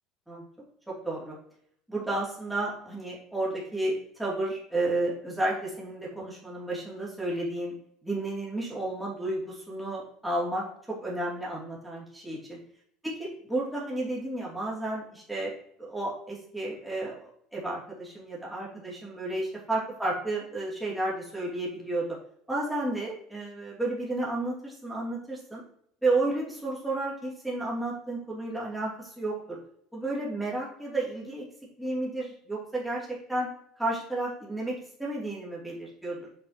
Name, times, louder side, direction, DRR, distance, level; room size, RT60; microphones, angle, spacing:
voice 1, 0.9-1.4 1.9-7.7 8.0-12.6 13.0-15.5 15.8-22.0 22.5-25.6 26.0-29.6 29.9-31.4 31.8-33.5 33.8-36.4, right 2 dB, 5° right, -6 dB, 2.8 m, -32 dB
7.8 x 5.4 x 3.0 m, 0.66 s
cardioid pair, 135°, 0 cm